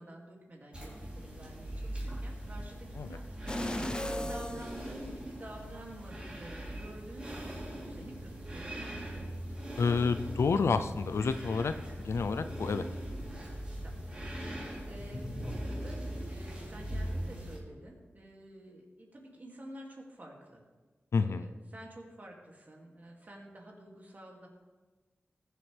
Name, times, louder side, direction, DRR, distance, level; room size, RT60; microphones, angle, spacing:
voice 1, 0.0-3.3 3.8-9.3 13.8-14.0 14.4-20.6 21.2-24.5, right 1 dB, 40° right, -1 dB, 2.5 m, -49 dB
sound 1, 0.7-17.6, equal, 25° right, 3.4 m, -40 dB
sound 2, 3.5-5.6 6.1-6.2, left 1 dB, 20° left, 0.7 m, -37 dB
voice 2, 9.8-11.7 12.0-12.8 21.1-21.5, left 4 dB, 80° left, 11 dB, 0.5 m, -29 dB
20.5 x 7.6 x 3.4 m, 1.3 s
wide cardioid pair, 110°, 4 cm